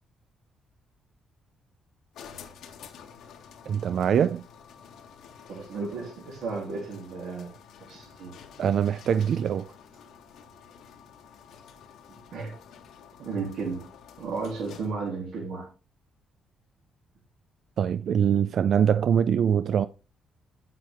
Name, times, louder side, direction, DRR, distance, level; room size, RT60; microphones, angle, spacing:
sound 1, 2.1-15.1, left 7 dB, 80° left, 1.7 m, -50 dB
voice 1, 3.7-4.5 8.6-9.7 17.8-19.9, right 8 dB, 65° right, 0.4 m, -23 dB
voice 2, 5.5-7.5 7.9-8.3 12.3-12.5 13.2-13.9 14.2-15.7, right 4 dB, 80° right, 3.2 m, -34 dB
8.7 x 7.5 x 3.5 m
cardioid pair, 90°, 0 cm